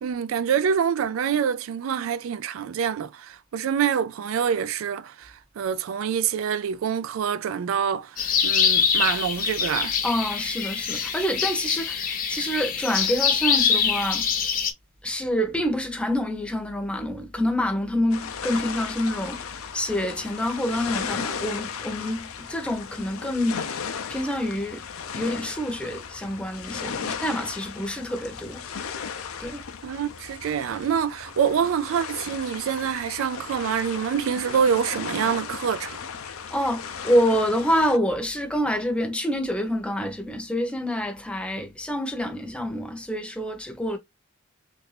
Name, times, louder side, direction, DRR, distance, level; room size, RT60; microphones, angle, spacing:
voice 1, 0.0-10.0 29.8-36.0, right 7 dB, 65° right, 0.3 m, -26 dB
sound 1, 8.2-14.7, left 7 dB, 40° left, 0.7 m, -24 dB
voice 2, 10.0-14.3 15.0-23.7 24.1-24.8 25.1-28.6 29.4-29.6 36.5-44.0, equal, 5° left, 0.7 m, -27 dB
sound 2, 18.1-38.0, left 6 dB, 80° left, 0.5 m, -36 dB
3.2 x 2.5 x 3.2 m
head